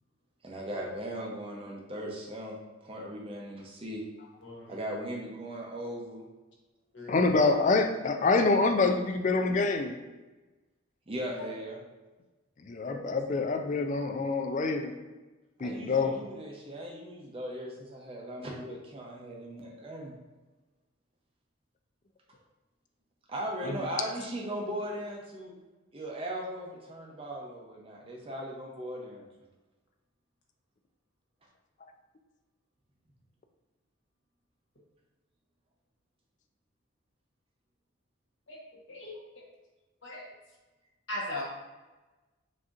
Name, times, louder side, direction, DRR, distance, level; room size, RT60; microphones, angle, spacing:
voice 1, 0.4-2.6 2.8-4.0 4.7-6.2 11.1-11.8 15.6-20.1 23.3-25.5 25.9-29.2, right 1 dB, 25° right, -2 dB, 0.7 m, -38 dB
voice 2, 4.4-4.8 6.9-7.4 12.9-13.2 38.5-38.6 38.9-39.2 40.0-40.2 41.1-41.4, left 1 dB, 65° left, -4 dB, 1.2 m, -39 dB
voice 3, 7.1-10.0 12.6-14.9 15.6-16.1 23.6-23.8, left 3 dB, 35° left, 5 dB, 0.3 m, -26 dB
6.1 x 2.8 x 2.5 m, 1.2 s
head